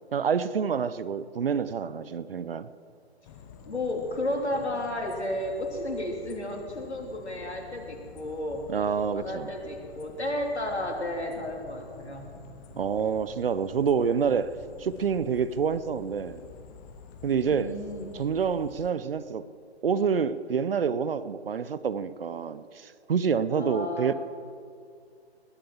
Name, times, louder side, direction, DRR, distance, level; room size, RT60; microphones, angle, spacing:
voice 1, 0.1-2.7 8.7-9.5 12.8-16.4 17.2-17.7 18.1-19.5 19.8-24.1, right 6 dB, 60° right, 15 dB, 0.8 m, -27 dB
sound 1, 3.2-18.9, left 6 dB, 20° left, 0.8 m, -49 dB
voice 2, 3.6-8.7 9.2-12.3 17.4-18.1 23.5-24.1, left 1 dB, 85° left, 1 dB, 3.4 m, -32 dB
20.0 x 8.8 x 7.3 m, 2.3 s
figure-of-eight pair, 140°, 33 cm